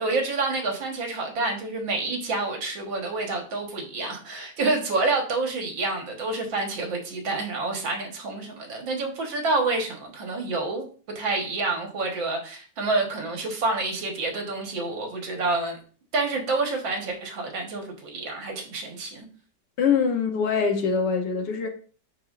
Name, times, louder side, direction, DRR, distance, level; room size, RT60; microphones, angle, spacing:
voice 1, 0.0-10.9 11.2-15.8 16.1-19.3, right 3 dB, 75° right, 2.1 m, -28 dB
voice 2, 19.8-21.7, left 6 dB, 70° left, 1.5 m, -23 dB
10.5 x 4.3 x 2.5 m
omnidirectional pair, 2.1 m